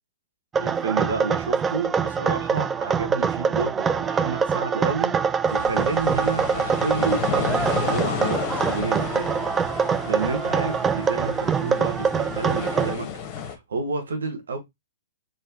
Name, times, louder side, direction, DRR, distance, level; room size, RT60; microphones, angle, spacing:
sound 1, 0.5-13.0, right 6 dB, 15° right, 0.3 m, -24 dB
voice 1, 0.6-9.3 9.8-13.1 13.4-14.6, right 4 dB, 75° right, 1.4 m, -30 dB
sound 2, 5.5-13.5, left 7 dB, 35° left, 1.1 m, -32 dB
4.7 x 3.1 x 2.8 m
figure-of-eight pair, 115°, 0 cm